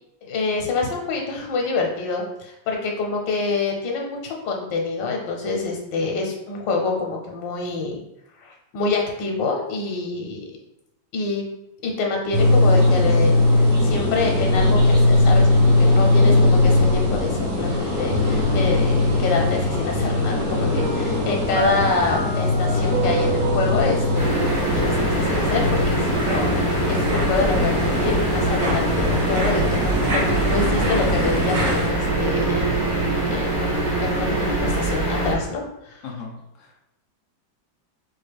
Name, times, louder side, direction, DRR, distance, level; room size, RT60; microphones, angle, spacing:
voice 1, 0.2-8.0 8.4-10.4 11.1-11.4 11.8-33.0 33.3-36.0, left 4 dB, 90° left, 1 dB, 1.4 m, -26 dB
sound 1, 12.3-31.9, left 2 dB, 55° right, 2.2 m, -20 dB
Piano, 20.8-25.7, right 7 dB, 70° right, 1.0 m, -30 dB
sound 2, 24.1-35.3, right 2 dB, 25° right, 0.4 m, -23 dB
voice 2, 36.0-36.8, left 5 dB, 60° left, 0 dB, 0.8 m, -36 dB
4.5 x 2.3 x 3.3 m, 0.85 s
omnidirectional pair, 2.0 m